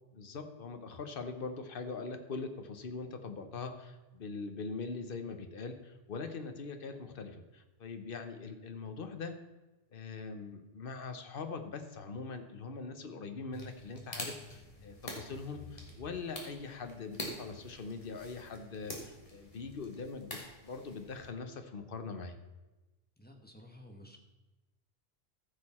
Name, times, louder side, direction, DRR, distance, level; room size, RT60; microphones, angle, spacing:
voice 1, 0.1-9.3 9.9-22.3, left 4 dB, 60° left, 7 dB, 1.1 m, -42 dB
sound 1, 13.5-21.3, left 1 dB, 35° left, 1.9 m, -46 dB
voice 2, 23.2-24.2, left 1 dB, 10° left, 1 dB, 1.2 m, -53 dB
14.5 x 6.7 x 4.3 m, 1.1 s
omnidirectional pair, 1.0 m